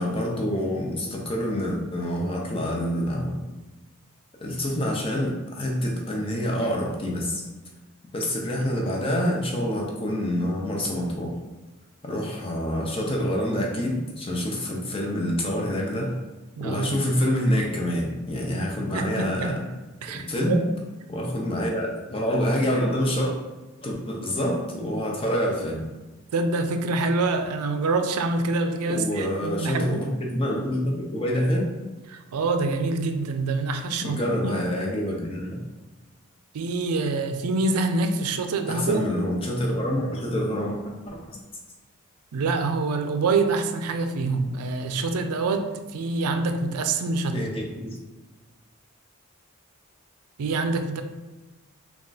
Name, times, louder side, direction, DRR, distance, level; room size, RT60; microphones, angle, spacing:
voice 1, 0.0-3.4 4.4-7.4 8.1-11.4 12.0-16.2 16.6-19.7 20.1-20.6 21.1-23.4 23.8-25.8 28.9-31.7 34.0-35.6 38.7-40.8 41.1-41.2 47.3-48.0, equal, 25° left, -1 dB, 0.6 m, -27 dB
voice 2, 16.6-16.9 18.9-19.6 20.0-20.7 26.3-30.0 32.1-34.6 36.5-39.1 42.3-47.4 50.4-51.0, right 3 dB, 90° right, 7 dB, 0.4 m, -26 dB
3.6 x 2.4 x 3.9 m, 1.2 s
head